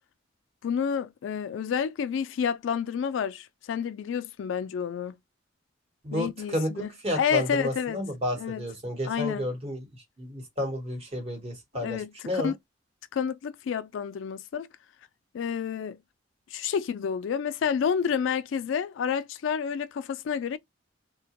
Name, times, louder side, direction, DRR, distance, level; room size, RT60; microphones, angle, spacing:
voice 1, 0.6-5.1 6.1-8.0 8.4-8.7 9.0-9.5 11.7-12.6 13.1-14.7 15.3-16.0 16.5-20.6, left 7 dB, 80° left, 0.3 m, -29 dB
voice 2, 6.0-9.9 10.2-12.0 12.2-12.5, equal, 30° right, 1.0 m, -31 dB
2.8 x 2.1 x 2.9 m
head